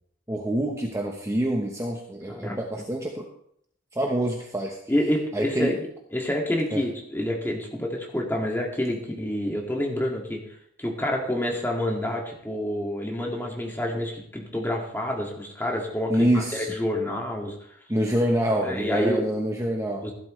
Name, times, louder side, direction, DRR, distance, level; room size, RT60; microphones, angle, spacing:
voice 1, 0.3-3.3 3.9-4.8 5.3-5.7 6.7-6.8 16.1-16.7 17.9-20.1, right 1 dB, 15° right, 1 dB, 1.0 m, -26 dB
voice 2, 4.9-5.9 6.1-10.4 10.8-17.5 18.5-19.3 20.0-20.1, left 1 dB, 10° left, -1 dB, 2.1 m, -28 dB
14.5 x 12.0 x 3.2 m, 0.69 s
head